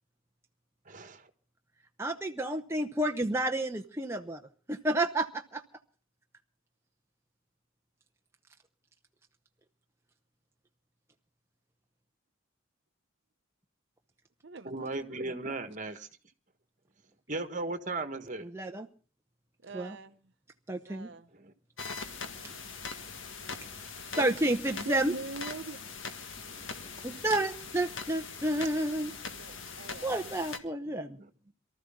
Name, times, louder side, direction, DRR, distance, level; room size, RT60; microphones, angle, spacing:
voice 1, 0.9-1.3 14.6-16.1 17.3-18.5 21.3-21.5 22.2-22.6 23.5-23.6 26.4-27.3 28.5-28.6 31.2-31.5, right 2 dB, 35° right, 1.5 m, -38 dB
voice 2, 2.0-4.4 4.7-5.6 18.5-18.9 19.7-20.0 20.7-21.1 24.2-25.1 27.0-29.1 30.0-31.2, right 1 dB, 10° right, 0.7 m, -30 dB
voice 3, 14.4-14.9 19.6-20.2 20.9-21.3 22.2-22.3 24.1-24.5 24.8-25.8 29.3-30.1, right 3 dB, 55° right, 0.8 m, -43 dB
sound 1, 21.8-30.6, left 5 dB, 65° left, 1.8 m, -41 dB
23.5 x 13.5 x 3.7 m
head